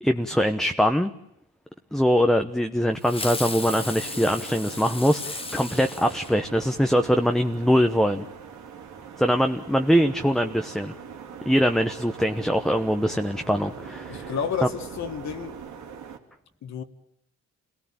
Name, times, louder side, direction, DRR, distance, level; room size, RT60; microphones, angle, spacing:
voice 1, 0.0-1.1 1.9-8.2 9.2-10.9 11.5-14.3 14.6-14.7, equal, ahead, 6 dB, 1.0 m, -22 dB
Fireworks, 3.0-6.9, left 3 dB, 20° left, 1.4 m, -35 dB
sound 1, 3.5-16.2, right 7 dB, 70° right, 3.2 m, -42 dB
voice 2, 14.1-15.6 16.6-16.8, left 7 dB, 65° left, 6 dB, 1.9 m, -30 dB
27.0 x 18.0 x 8.8 m, 0.82 s
cardioid pair, 90°, 30 cm